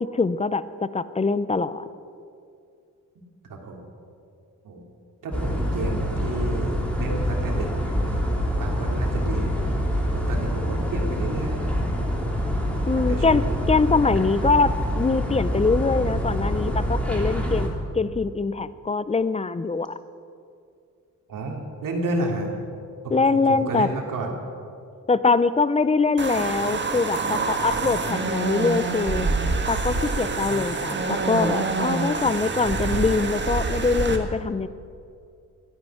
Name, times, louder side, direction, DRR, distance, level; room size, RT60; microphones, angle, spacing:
voice 1, 0.1-1.9 12.9-17.7 17.9-20.0 23.1-23.9 25.1-29.3 29.7-34.7, left 4 dB, 20° left, 15 dB, 0.5 m, -23 dB
voice 2, 5.2-8.2 8.6-9.8 10.1-11.7 12.9-13.5 21.3-22.5 23.0-24.3, right 2 dB, 75° right, 1 dB, 3.1 m, -31 dB
sound 1, 5.3-17.7, equal, 5° left, 2.8 m, -25 dB
sound 2, 26.2-34.2, right 3 dB, 35° right, 1.6 m, -26 dB
13.5 x 10.5 x 9.8 m, 2.4 s
cardioid pair, 115°, 33 cm